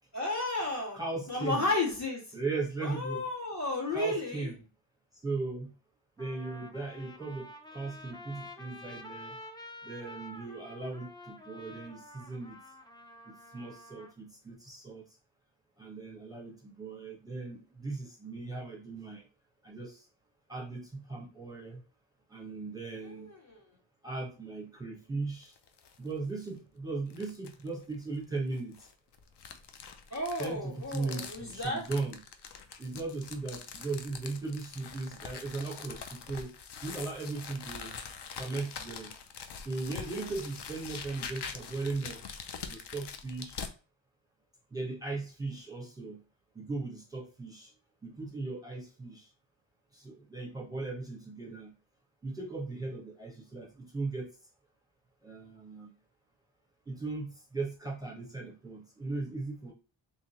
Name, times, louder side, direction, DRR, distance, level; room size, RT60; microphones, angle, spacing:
voice 1, 0.1-1.0 1.3-2.2 2.8-4.5 23.0-23.6 30.1-31.9 40.1-40.2, left 2 dB, 35° left, -4 dB, 1.7 m, -33 dB
voice 2, 0.9-1.7 2.3-3.2 3.9-4.5 5.2-5.7 6.2-9.4 9.8-12.6 13.3-15.0 15.8-19.3 19.6-20.1 20.5-21.8 22.3-23.3 24.0-25.5 26.0-28.9 30.4-32.2 32.8-36.5 36.8-38.0 38.4-39.1 39.6-42.2 42.7-43.6 44.7-46.2 46.5-47.7 48.0-49.3 49.9-51.7 52.2-54.3 55.2-55.9 56.9-59.7, right 3 dB, 10° right, -3 dB, 1.1 m, -38 dB
Trumpet, 5.5-5.6 6.2-14.1, left 1 dB, 10° left, 0.4 m, -49 dB
sound 1, 25.4-26.0 26.4-26.5 27.1-27.7 28.5-43.7, left 6 dB, 55° left, 0.6 m, -44 dB
3.6 x 3.0 x 2.9 m, 0.35 s
wide cardioid pair, 115°, 48 cm